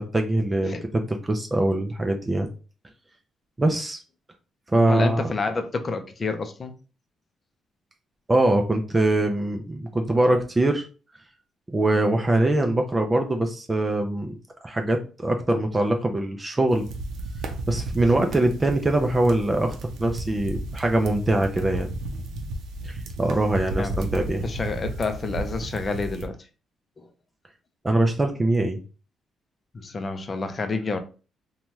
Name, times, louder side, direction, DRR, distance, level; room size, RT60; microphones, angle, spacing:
voice 1, 0.0-2.5 3.6-4.0 4.7-5.3 8.3-10.9 11.7-14.4 14.6-16.9 17.7-21.9 22.8-24.4 27.8-28.8, right 2 dB, 20° right, 0.4 m, -23 dB
voice 2, 4.9-6.8 23.8-24.0 24.4-26.4 27.0-27.1 29.7-31.0, left 3 dB, 35° left, 0.5 m, -29 dB
sound 1, 16.7-26.3, right 2 dB, 80° right, 0.5 m, -33 dB
2.8 x 2.3 x 3.1 m
cardioid pair, 90°, 0 cm